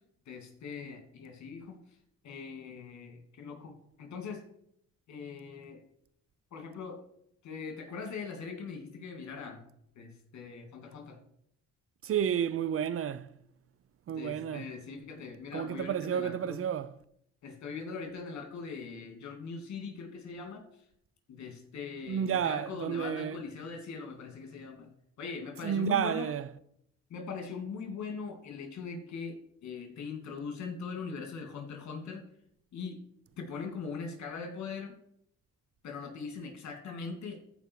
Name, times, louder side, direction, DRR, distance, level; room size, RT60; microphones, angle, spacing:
voice 1, 0.3-1.8 2.2-4.4 5.1-5.8 6.5-7.0 7.4-9.6 9.9-11.2 14.1-16.6 17.4-20.6 21.3-24.9 25.2-26.3 27.1-29.4 29.6-32.2 32.7-33.0 33.4-34.9 35.8-37.4, left 5 dB, 70° left, 2.7 m, -41 dB
voice 2, 12.0-13.3 14.1-14.8 15.5-17.0 22.1-23.4 25.6-26.5, right 9 dB, 50° right, 0.6 m, -31 dB
14.0 x 5.1 x 4.7 m
cardioid pair, 90°, 30 cm